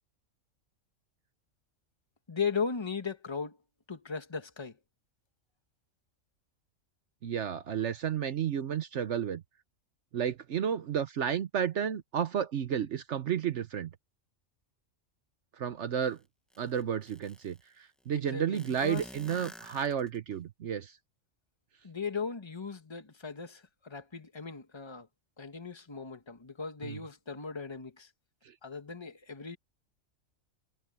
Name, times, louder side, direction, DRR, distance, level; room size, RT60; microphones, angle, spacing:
voice 1, 2.3-3.6 3.9-4.8 18.1-19.1 21.8-25.1 25.4-28.1 28.6-29.6, left 5 dB, 20° left, 1.3 m, -37 dB
voice 2, 7.2-9.4 10.1-13.9 15.6-16.2 16.6-20.9 26.8-27.0, right 8 dB, 65° right, 1.1 m, -32 dB
sound 1, 16.0-16.1 16.5-17.6 18.5-20.4, equal, ahead, 0.9 m, -50 dB
omnidirectional pair, 1.3 m